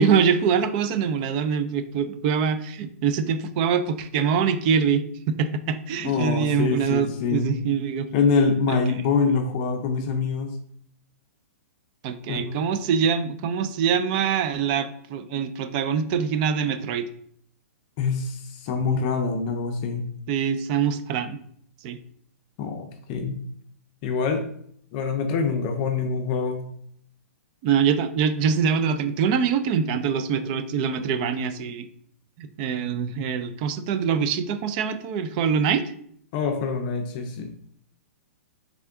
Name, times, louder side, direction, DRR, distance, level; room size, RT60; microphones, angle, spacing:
voice 1, 0.0-8.1 12.0-17.1 20.3-21.4 21.8-22.0 27.6-31.9 32.4-35.8, right 7 dB, 35° right, 11 dB, 0.4 m, -24 dB
voice 2, 6.0-7.5 8.1-10.5 12.3-12.6 18.0-20.0 22.6-23.4 24.0-24.4 24.9-26.7 36.3-37.5, left 5 dB, 35° left, 5 dB, 0.5 m, -25 dB
3.6 x 3.4 x 3.6 m, 0.65 s
hypercardioid pair, 150°, 8 cm